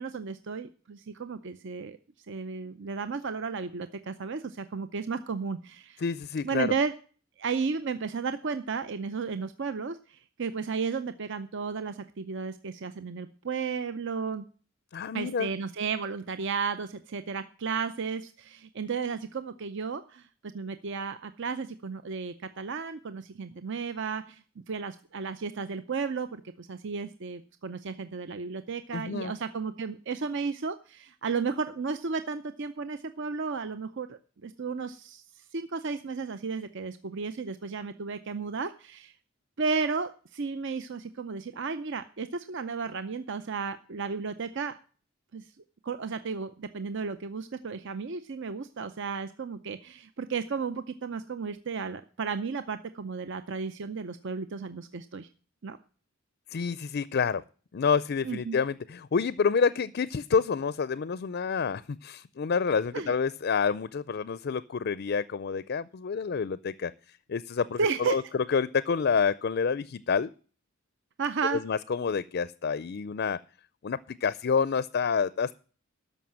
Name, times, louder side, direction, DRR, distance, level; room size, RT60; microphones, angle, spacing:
voice 1, 0.0-2.0 2.3-6.0 6.4-6.9 7.4-14.4 15.1-20.3 20.5-39.1 39.6-44.8 45.3-45.4 45.8-55.3 55.6-55.8 58.2-58.6 62.9-63.1 67.8-68.2 71.2-71.6, right 5 dB, 60° right, 11 dB, 0.6 m, -33 dB
voice 2, 6.0-6.7 14.9-15.5 28.9-29.3 56.5-57.4 57.7-66.9 67.3-70.3 71.5-73.4 73.8-75.5, left 5 dB, 50° left, 17 dB, 0.4 m, -28 dB
13.0 x 5.6 x 7.5 m, 0.39 s
head